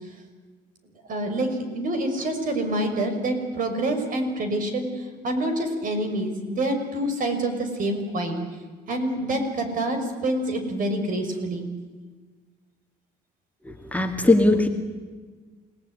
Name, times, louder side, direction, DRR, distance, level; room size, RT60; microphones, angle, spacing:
voice 1, 1.1-8.4 8.9-11.7, right 1 dB, 55° right, 6 dB, 6.0 m, -27 dB
voice 2, 13.9-14.7, left 2 dB, 10° left, 3 dB, 2.3 m, -18 dB
29.0 x 18.5 x 9.8 m, 1.4 s
cardioid pair, 110°, 17 cm